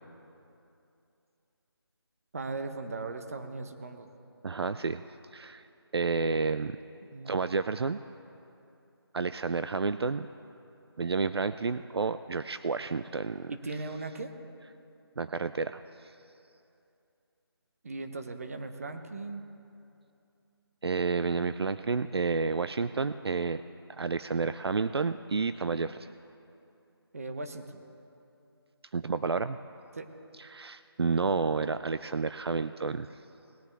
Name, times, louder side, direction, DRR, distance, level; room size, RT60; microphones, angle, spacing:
voice 1, 2.3-4.1 7.1-7.4 13.5-14.3 17.8-19.4 27.1-27.8 29.9-30.1, right 3 dB, 35° right, 7 dB, 0.8 m, -38 dB
voice 2, 4.4-5.0 5.3-5.7 5.9-6.8 7.2-8.0 9.1-10.3 11.0-13.5 15.2-16.1 20.8-23.6 23.9-26.1 28.9-29.6 30.4-33.2, right 4 dB, 75° right, 12 dB, 0.4 m, -30 dB
19.5 x 9.7 x 3.3 m, 2.7 s
figure-of-eight pair, 165°, 13 cm